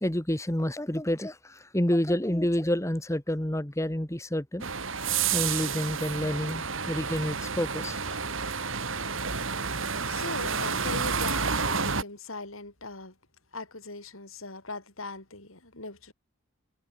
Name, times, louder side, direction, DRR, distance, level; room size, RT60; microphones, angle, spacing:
voice 1, 0.0-4.7 5.3-8.2, left 1 dB, 15° left, 1.4 m, -29 dB
sound 1, 4.6-12.0, right 5 dB, 65° right, 3.0 m, -30 dB
voice 2, 10.0-13.2 13.5-16.1, left 3 dB, 75° left, 6.2 m, -40 dB
head